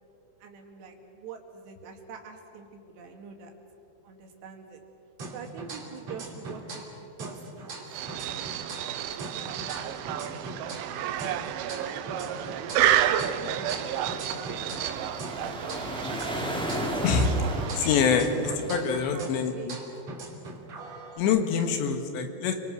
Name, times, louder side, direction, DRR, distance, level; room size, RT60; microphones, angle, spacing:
voice 1, 0.4-3.5 4.0-4.8 5.3-6.9 7.2-7.7 9.0-10.0 11.0-14.3 18.5-19.7 21.6-22.1, right 6 dB, 65° right, 2 dB, 4.1 m, -46 dB
sound 1, 5.2-6.9 7.2-10.9 11.2-14.9 15.2-18.9 19.2-21.2, right 3 dB, 40° right, 3.6 m, -41 dB
sound 2, 7.9-18.3, right 11 dB, 85° right, 3.3 m, -30 dB
sound 3, 9.7-19.1, equal, ahead, 1.4 m, -37 dB
voice 2, 17.8-18.3 18.7-19.8 21.2-22.5, left 6 dB, 70° left, 6 dB, 3.5 m, -25 dB
30.0 x 24.0 x 6.4 m, 2.9 s
omnidirectional pair, 5.6 m